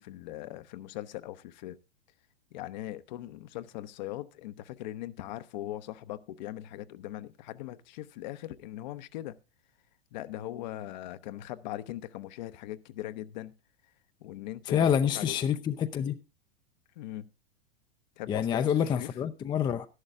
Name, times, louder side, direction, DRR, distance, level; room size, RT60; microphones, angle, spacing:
voice 1, 0.0-1.8 2.5-9.4 10.1-13.5 14.2-15.4 17.0-17.3 18.2-19.1, left 14 dB, 50° left, 0.8 m, -40 dB
voice 2, 14.7-16.2 18.3-19.9, left 8 dB, 15° left, 0.5 m, -27 dB
12.5 x 11.0 x 3.6 m
figure-of-eight pair, 100°, 30 cm